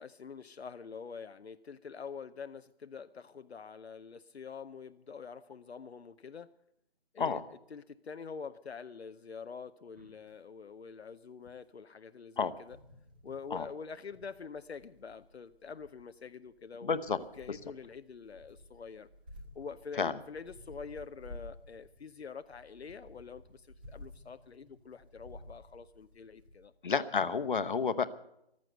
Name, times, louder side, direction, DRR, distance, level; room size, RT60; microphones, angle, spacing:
voice 1, 0.0-6.5 7.1-7.4 7.7-12.8 13.2-19.1 19.6-26.7, left 5 dB, 75° left, 10 dB, 0.7 m, -46 dB
sound 1, 10.0-10.3 11.5-11.6 12.4-26.7, left 1 dB, 10° right, 0.7 m, -54 dB
voice 2, 16.8-17.2 17.5-17.6 20.0-20.1 26.8-28.1, left 5 dB, 50° left, 12 dB, 1.0 m, -30 dB
14.5 x 12.0 x 7.9 m, 0.81 s
figure-of-eight pair, 155°, 32 cm